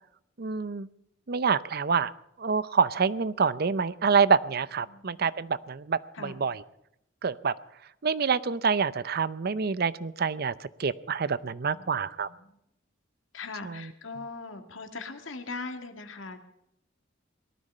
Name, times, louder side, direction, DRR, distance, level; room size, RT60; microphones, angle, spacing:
voice 1, 0.4-0.9 1.3-2.1 2.4-6.6 7.2-7.5 8.0-12.3, right 5 dB, 50° right, 17 dB, 0.6 m, -27 dB
voice 2, 4.9-5.6 6.1-6.4 11.7-12.6 13.3-16.4, left 3 dB, 80° left, 6 dB, 2.1 m, -41 dB
18.5 x 13.0 x 5.5 m, 0.78 s
head